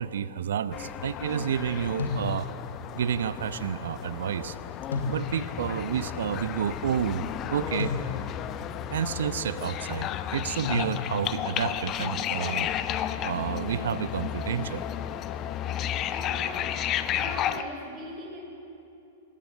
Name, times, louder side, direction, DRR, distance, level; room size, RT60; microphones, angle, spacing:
voice 1, 0.0-2.5 2.9-4.6 5.1-7.9 8.9-12.7 13.2-14.8, right 8 dB, 65° right, 14 dB, 0.9 m, -30 dB
sound 1, 0.7-17.6, left 10 dB, 35° left, 0.9 m, -33 dB
sound 2, 2.0-2.8 4.9-5.7 7.8-8.6 10.6-11.4, left 4 dB, 75° left, 4.0 m, -33 dB
voice 2, 16.1-16.9 17.1-18.4, right 1 dB, 30° right, -1 dB, 6.3 m, -40 dB
26.0 x 21.0 x 6.6 m, 2.8 s
figure-of-eight pair, 100°, 0 cm